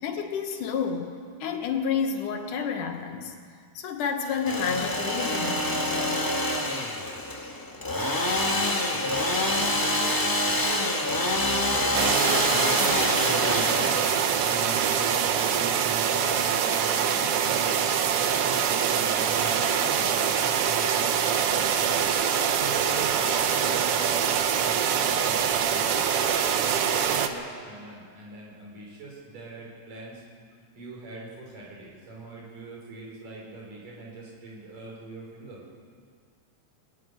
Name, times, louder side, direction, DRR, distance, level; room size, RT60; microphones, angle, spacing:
voice 1, 0.0-1.1 1.4-3.4 3.7-6.3, left 6 dB, 80° left, 4 dB, 3.1 m, -30 dB
Engine / Sawing, 4.3-15.9, left 1 dB, 25° left, 0.4 m, -27 dB
voice 2, 8.8-13.9 14.4-17.7 18.1-20.3 20.6-22.0 22.4-25.9 26.4-30.2 30.7-35.6, right 3 dB, 85° right, -4 dB, 6.5 m, -40 dB
sound 1, 11.9-27.3, right 8 dB, 65° right, 1.4 m, -24 dB
20.5 x 13.5 x 9.8 m, 2.1 s
omnidirectional pair, 3.7 m